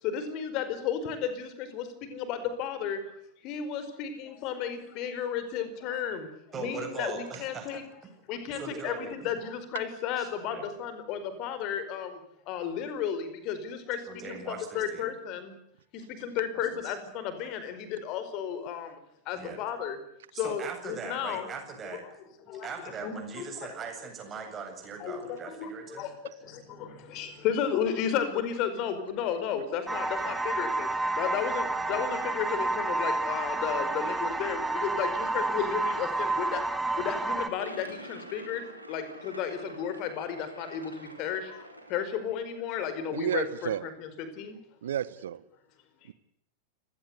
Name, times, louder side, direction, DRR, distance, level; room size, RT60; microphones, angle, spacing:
voice 1, 0.0-3.0 3.4-6.3 6.5-7.8 8.3-12.2 12.5-15.5 15.9-19.0 19.2-20.0 20.3-21.5 22.5-23.7 25.0-26.1 26.4-36.6 37.0-44.6, left 8 dB, 40° left, 11 dB, 4.9 m, -33 dB
voice 2, 6.5-7.8 8.5-9.3 10.2-10.7 14.0-15.1 16.7-16.9 19.3-19.6 20.3-22.0 22.5-26.0, right 5 dB, 25° right, 4 dB, 7.9 m, -40 dB
sound 1, 29.9-37.5, right 2 dB, 5° right, 2.7 m, -30 dB
sound 2, 37.6-42.6, right 1 dB, 90° right, 4.5 m, -47 dB
voice 3, 43.1-43.9 44.8-45.4 46.1-46.2, right 10 dB, 60° right, 19 dB, 1.2 m, -32 dB
29.5 x 18.0 x 8.2 m, 0.73 s
figure-of-eight pair, 90°, 0 cm